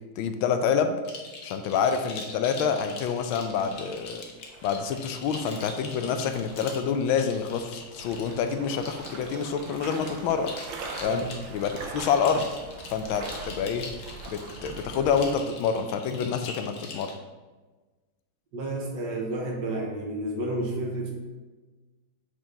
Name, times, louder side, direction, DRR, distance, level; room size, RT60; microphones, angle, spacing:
voice 1, 0.2-1.0 1.4-4.2 4.6-10.5 11.0-11.3 11.5-12.5 12.9-13.9 14.3-17.1, left 6 dB, 85° left, 7 dB, 1.4 m, -27 dB
sound 1, 1.0-17.1, left 4 dB, 60° left, 1.5 m, -43 dB
sound 2, 3.1-15.4, right 4 dB, 80° right, 1.6 m, -43 dB
voice 2, 18.5-21.1, right 1 dB, 60° right, 0 dB, 1.6 m, -31 dB
6.8 x 5.1 x 3.7 m, 1.3 s
omnidirectional pair, 2.2 m